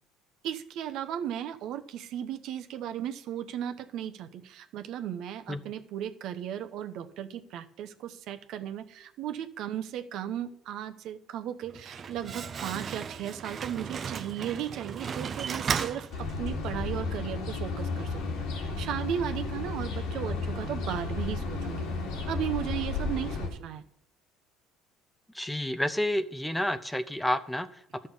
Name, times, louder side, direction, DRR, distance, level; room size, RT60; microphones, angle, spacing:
voice 1, 0.4-21.9 22.3-23.8, right 10 dB, 65° right, 9 dB, 0.9 m, -36 dB
Slam, 11.6-16.7, right 6 dB, 35° right, 0.7 m, -35 dB
sound 1, 16.1-23.5, left 3 dB, 80° left, 2.6 m, -33 dB
voice 2, 25.3-28.1, left 1 dB, 5° left, 12 dB, 0.6 m, -30 dB
11.5 x 6.6 x 5.5 m, 0.71 s
supercardioid pair, 100°, 0 cm